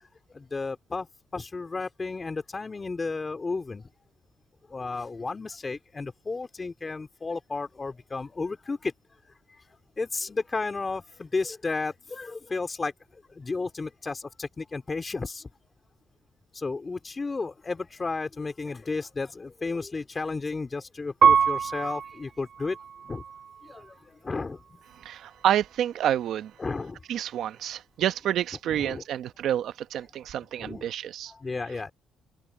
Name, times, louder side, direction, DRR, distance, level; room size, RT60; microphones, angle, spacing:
voice 1, 0.3-1.1 1.3-3.8 4.7-8.9 10.0-15.5 16.5-22.8 23.0-23.2 23.6-24.8 26.6-27.0 28.7-29.0 30.6-30.9 31.3-31.9, left 3 dB, 30° left, 3.0 m, -33 dB
Piano, 21.2-24.0 24.6-25.3, right 7 dB, 55° right, 1.3 m, -26 dB
voice 2, 25.0-26.5 27.1-31.3, right 11 dB, 75° right, 0.9 m, -28 dB
open air
cardioid pair, 90°, 0 cm